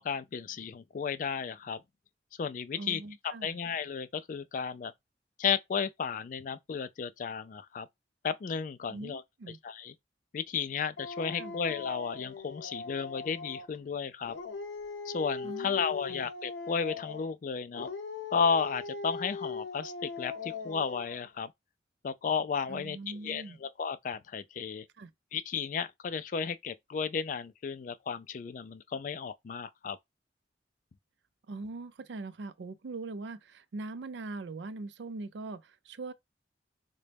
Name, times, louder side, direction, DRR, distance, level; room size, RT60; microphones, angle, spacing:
voice 1, 0.0-1.8 2.4-3.0 3.4-4.9 5.4-7.9 8.2-9.2 9.6-9.9 10.3-14.4 15.1-17.9 18.3-21.5 22.0-24.9 25.3-30.0, left 6 dB, 45° left, 0.3 m, -33 dB
voice 2, 2.7-3.6 8.9-9.6 11.4-11.6 15.4-15.8 16.1-16.2 22.7-23.6 25.0-25.1 31.5-36.1, right 3 dB, 75° right, 0.4 m, -41 dB
Dog, 11.0-13.8 14.2-17.3 17.7-21.3, left 4 dB, 90° left, 0.7 m, -40 dB
3.9 x 2.2 x 3.3 m
head